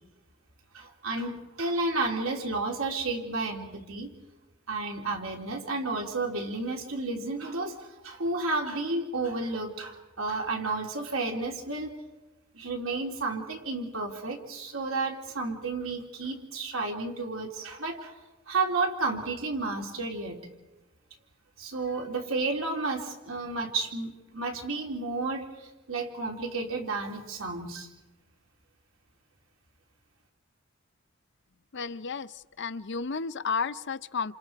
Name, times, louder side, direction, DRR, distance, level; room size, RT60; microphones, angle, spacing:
voice 1, 0.7-4.1 4.7-12.0 12.5-18.1 18.5-20.4 21.6-27.9, right 3 dB, 85° right, 2 dB, 3.4 m, -32 dB
voice 2, 31.7-34.3, left 5 dB, 60° left, 14 dB, 0.7 m, -32 dB
29.0 x 28.0 x 4.7 m, 1.1 s
head